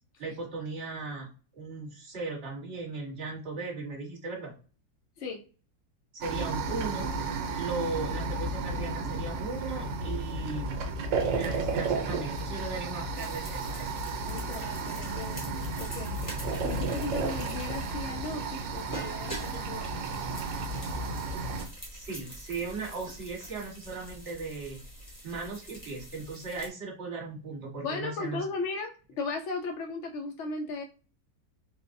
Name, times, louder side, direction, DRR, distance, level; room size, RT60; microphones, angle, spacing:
voice 1, 0.2-1.3 1.5-4.5 6.1-7.1 7.6-10.8 11.4-13.9 21.9-24.8 25.2-28.4, right 4 dB, 40° right, -3 dB, 1.4 m, -37 dB
sound 1, 6.2-21.7, right 3 dB, 85° right, 1.3 m, -33 dB
sound 2, 13.1-26.7, right 1 dB, 20° left, 0.6 m, -45 dB
voice 2, 14.2-20.0 27.8-30.8, left 3 dB, 75° left, 2 dB, 0.6 m, -37 dB
3.8 x 2.0 x 2.5 m, 0.36 s
omnidirectional pair, 1.8 m